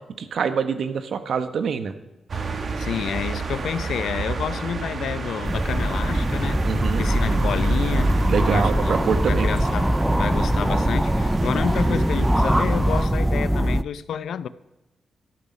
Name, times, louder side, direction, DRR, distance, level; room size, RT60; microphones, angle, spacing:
voice 1, 0.2-1.9 6.6-7.1 8.3-9.5, right 6 dB, 65° right, 1.2 m, -25 dB
sound 1, 2.3-13.1, right 4 dB, 50° right, 1.5 m, -30 dB
voice 2, 2.8-6.7 7.0-8.1 8.5-14.5, left 8 dB, 80° left, 0.6 m, -29 dB
sound 2, 5.3-13.3, right 1 dB, 25° right, 2.9 m, -48 dB
sound 3, 5.4-13.8, right 1 dB, 5° right, 0.4 m, -22 dB
13.0 x 12.5 x 5.5 m
wide cardioid pair, 120°, 0 cm